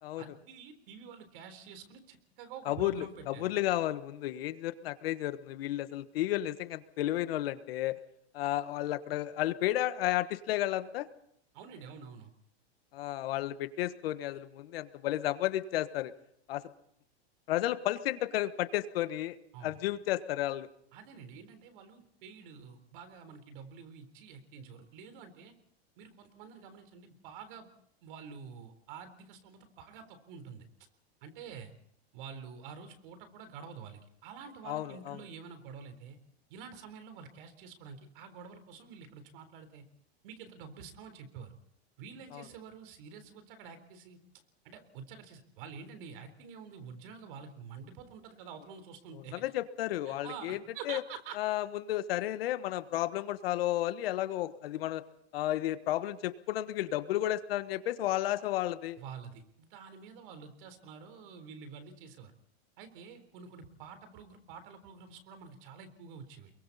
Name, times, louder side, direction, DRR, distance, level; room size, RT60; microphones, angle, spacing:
voice 1, 0.2-3.5 11.5-12.3 19.5-19.8 20.9-25.5 26.0-27.7 28.0-30.7 31.2-31.7 32.1-36.2 36.5-39.8 40.2-41.5 42.0-44.2 44.6-49.4 50.1-51.4 59.0-62.3 62.8-66.5, right 6 dB, 55° right, 9 dB, 3.8 m, -48 dB
voice 2, 2.6-8.0 8.3-11.1 12.9-16.1 16.5-16.6 17.5-19.4 19.6-20.7 34.7-35.2 42.3-42.4 49.3-50.6 50.9-51.0 51.4-55.0 55.3-59.0, left 14 dB, 65° left, 12 dB, 1.4 m, -32 dB
29.0 x 22.5 x 4.2 m, 0.70 s
supercardioid pair, 150°, 31 cm